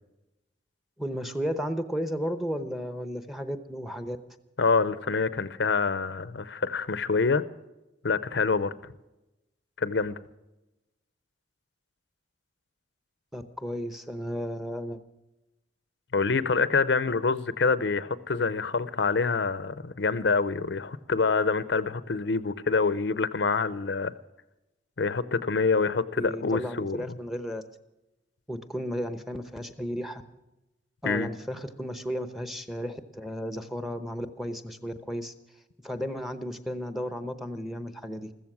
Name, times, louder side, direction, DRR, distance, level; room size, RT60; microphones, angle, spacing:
voice 1, 1.0-4.2 13.3-15.0 26.2-27.6 28.5-30.2 31.0-35.3 35.8-38.3, equal, ahead, 0.8 m, -34 dB
voice 2, 4.6-7.4 8.0-8.7 9.8-10.2 16.1-24.1 25.0-27.0 31.0-31.3, left 4 dB, 65° left, 0.6 m, -26 dB
15.0 x 14.5 x 6.1 m
head